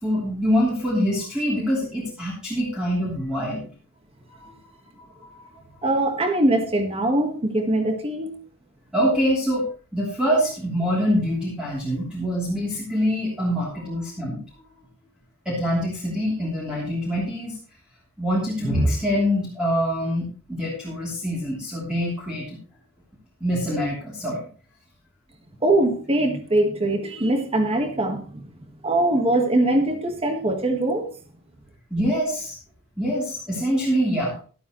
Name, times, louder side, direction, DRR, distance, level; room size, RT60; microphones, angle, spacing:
voice 1, 0.0-3.7 4.4-4.5 5.0-5.5 8.9-14.4 15.4-17.6 18.2-22.6 23.4-24.4 31.9-32.6 33.0-34.4, equal, 5° right, 3.2 m, -25 dB
voice 2, 5.8-8.3 25.6-28.5 28.8-31.1, right 1 dB, 25° right, 1.5 m, -22 dB
12.5 x 12.5 x 3.1 m
head